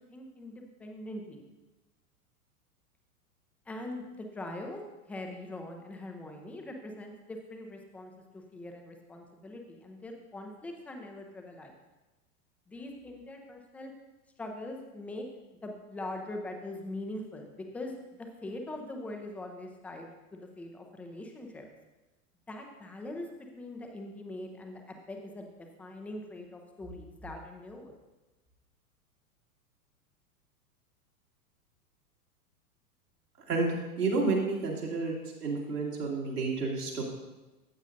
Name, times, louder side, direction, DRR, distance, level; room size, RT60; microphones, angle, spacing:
voice 1, 0.1-1.5 3.7-4.8 5.1-11.7 12.7-13.9 14.4-15.2 15.6-21.7 22.5-27.9, left 1 dB, 5° left, 3 dB, 0.4 m, -42 dB
voice 2, 33.5-37.0, right 3 dB, 85° right, -4 dB, 2.6 m, -30 dB
14.0 x 8.1 x 2.6 m, 1.1 s
figure-of-eight pair, 95°, 45 cm